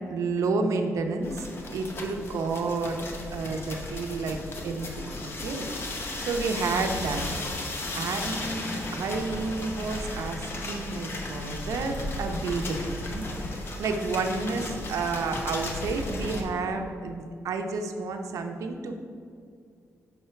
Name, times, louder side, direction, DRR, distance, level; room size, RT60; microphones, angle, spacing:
voice 1, 0.1-3.0 3.3-4.4 4.6-5.6 6.2-7.2 7.9-12.8 13.1-13.3 13.8-19.0, right 4 dB, 85° right, 5 dB, 0.6 m, -30 dB
sound 1, 1.2-16.4, left 2 dB, 45° left, 0.8 m, -35 dB
5.8 x 4.4 x 5.7 m, 2.3 s
wide cardioid pair, 155°, 5 cm